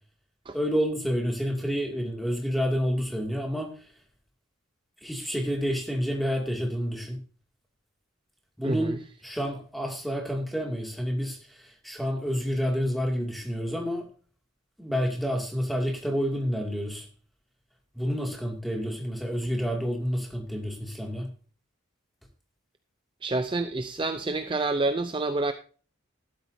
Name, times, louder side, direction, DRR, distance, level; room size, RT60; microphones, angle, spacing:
voice 1, 0.5-3.9 5.0-7.2 8.6-9.0 9.2-14.1 14.8-17.1 17.9-21.3, equal, ahead, 1 dB, 2.2 m, -29 dB
voice 2, 8.6-9.0 23.2-25.5, right 2 dB, 25° right, 9 dB, 0.5 m, -28 dB
13.5 x 12.0 x 2.7 m, 0.39 s
head